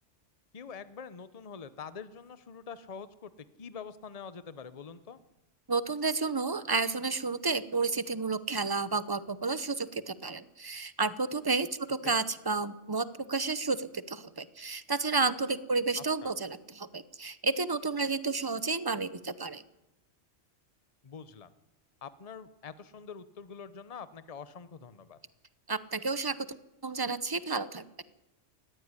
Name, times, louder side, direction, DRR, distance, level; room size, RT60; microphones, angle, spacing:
voice 1, 0.5-3.3 3.6-5.2 12.0-12.2 16.0-16.3 21.0-21.5 22.0-25.2, left 6 dB, 35° left, 14 dB, 0.9 m, -45 dB
voice 2, 5.7-19.6 25.7-26.5 26.8-27.8, right 4 dB, 25° right, 15 dB, 0.8 m, -31 dB
19.0 x 15.0 x 9.7 m, 0.96 s
omnidirectional pair, 1.2 m